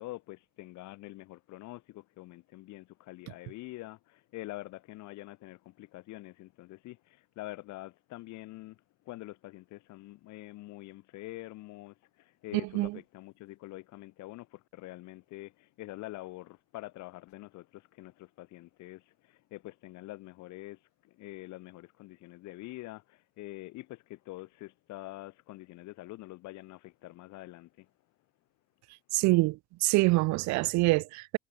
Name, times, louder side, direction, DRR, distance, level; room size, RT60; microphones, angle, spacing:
voice 1, 0.0-27.9, left 18 dB, 50° left, 3.4 m, -46 dB
voice 2, 29.1-31.4, right 22 dB, 50° right, 1.4 m, -25 dB
hypercardioid pair, 80°, 37 cm